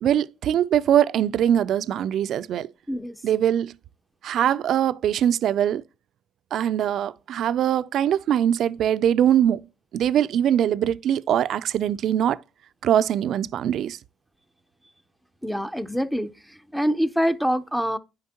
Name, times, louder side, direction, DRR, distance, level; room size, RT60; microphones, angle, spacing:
voice 1, 0.0-2.7 3.2-3.8 4.2-5.8 6.5-9.7 9.9-12.4 12.8-14.0, right 10 dB, 65° right, 0.3 m, -22 dB
voice 2, 15.4-18.0, equal, ahead, 0.5 m, -25 dB
9.5 x 5.1 x 2.8 m
cardioid pair, 85°, 0 cm